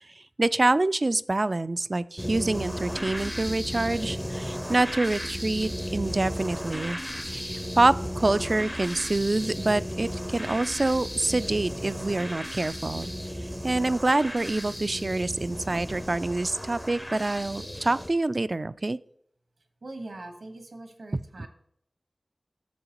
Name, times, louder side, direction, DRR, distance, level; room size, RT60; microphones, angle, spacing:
voice 1, 0.4-7.0 7.3-13.1 13.4-19.0 21.4-21.5, right 2 dB, 45° right, 16 dB, 0.3 m, -26 dB
sound 1, 2.2-18.1, equal, 5° left, 0.5 m, -35 dB
voice 2, 19.8-21.5, right 2 dB, 80° right, 6 dB, 1.3 m, -42 dB
10.0 x 7.0 x 3.0 m, 0.70 s
wide cardioid pair, 55°, 0 cm